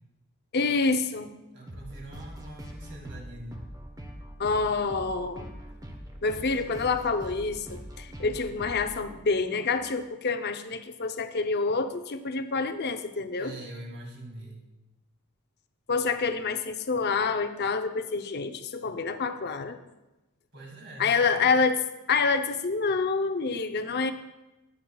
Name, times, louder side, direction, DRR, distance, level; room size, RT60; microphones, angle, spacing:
voice 1, 0.5-1.3 4.4-5.5 6.2-13.5 15.9-19.8 21.0-21.8 22.1-24.1, left 4 dB, 45° left, 8 dB, 0.6 m, -27 dB
voice 2, 1.5-3.6 8.2-8.3 13.4-14.7 20.5-21.6, right 1 dB, 50° right, -1 dB, 2.4 m, -44 dB
sound 1, 1.7-10.1, equal, 15° right, 1.1 m, -43 dB
19.0 x 7.6 x 2.3 m, 1.0 s
head